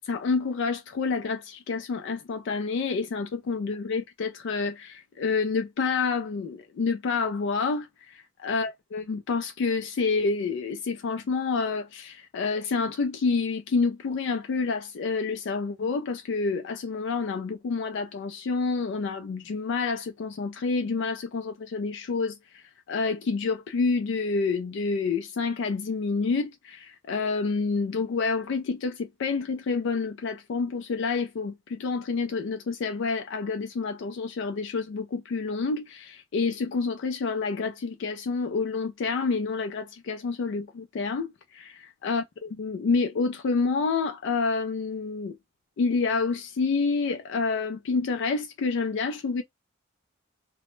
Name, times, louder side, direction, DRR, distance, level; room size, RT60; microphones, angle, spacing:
voice 1, 0.0-41.7 42.0-45.4 45.8-49.4, left 4 dB, 60° left, 0.3 m, -28 dB
2.1 x 2.0 x 3.0 m
head